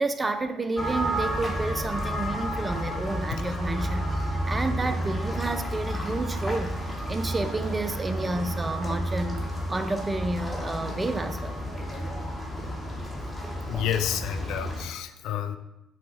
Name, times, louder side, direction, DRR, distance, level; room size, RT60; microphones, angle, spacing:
voice 1, 0.0-6.8 7.1-11.6, right 2 dB, 25° right, 9 dB, 0.4 m, -30 dB
sound 1, 0.8-14.8, equal, 10° left, 1.2 m, -31 dB
voice 2, 13.7-15.6, left 10 dB, 70° left, 9 dB, 0.3 m, -30 dB
5.7 x 2.4 x 3.9 m, 0.90 s
hypercardioid pair, 60°, 0 cm